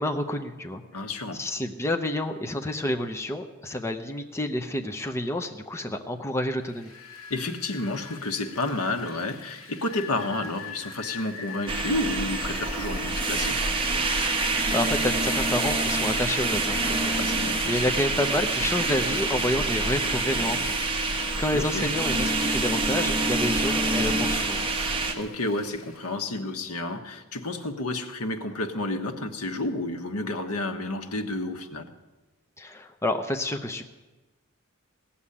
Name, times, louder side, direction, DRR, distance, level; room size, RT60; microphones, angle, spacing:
voice 1, 0.0-0.8 1.4-6.9 14.7-20.8 21.4-24.7 32.6-33.8, left 1 dB, 10° left, 4 dB, 0.7 m, -29 dB
voice 2, 0.9-1.4 7.3-13.6 17.1-17.9 21.5-21.9 25.1-31.9, left 2 dB, 90° left, 7 dB, 1.2 m, -31 dB
Rain, 6.7-26.1, left 4 dB, 65° left, 2.1 m, -42 dB
sound 1, 11.7-25.1, right 3 dB, 25° right, 1.2 m, -26 dB
17.0 x 7.2 x 9.9 m, 1.2 s
head